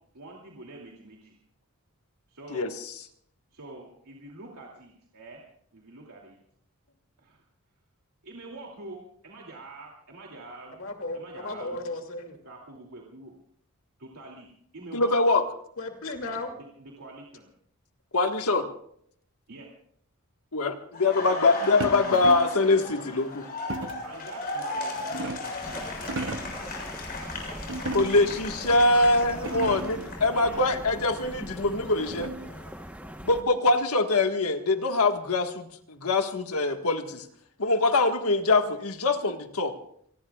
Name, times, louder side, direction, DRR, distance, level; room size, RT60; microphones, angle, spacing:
voice 1, 0.1-1.4 2.3-2.7 3.5-5.4 5.7-6.4 7.2-7.4 8.2-10.8 11.1-11.9 12.4-13.3 14.0-14.5 14.7-15.2 16.5-17.5 19.5-19.7 24.0-26.9 27.2-27.8 28.1-28.3 28.7-28.8 29.5-30.9, right 2 dB, 85° right, -1 dB, 2.8 m, -46 dB
voice 2, 10.7-12.4 15.8-16.5, left 2 dB, 65° left, 3 dB, 2.6 m, -35 dB
voice 3, 14.9-15.4 18.1-18.7 20.5-23.5 27.9-32.3 33.2-37.2 37.6-39.7, left 3 dB, 90° left, 5 dB, 1.7 m, -23 dB
Laughter, 20.9-30.8 31.1-33.1, left 2 dB, 45° left, 6.7 m, -37 dB
sound 1, 21.8-22.6 23.7-24.1 24.8-25.6 26.0-26.6 27.7-28.4 29.0-29.1 29.3-30.1 31.4-32.6, right 2 dB, 60° right, 0.8 m, -35 dB
sound 2, 25.6-33.4, equal, 5° right, 1.1 m, -41 dB
28.0 x 19.5 x 2.4 m, 0.66 s
head